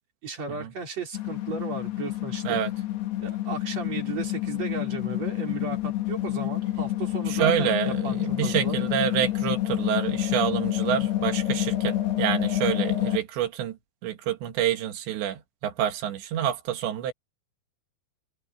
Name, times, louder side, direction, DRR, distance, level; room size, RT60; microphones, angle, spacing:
voice 1, 0.2-2.6 3.2-8.8, right 4 dB, 40° right, 5.8 m, -35 dB
sound 1, 1.1-13.2, left 14 dB, 70° left, 4.8 m, -28 dB
voice 2, 7.2-13.8 14.0-17.1, right 10 dB, 90° right, 4.0 m, -27 dB
omnidirectional pair, 4.9 m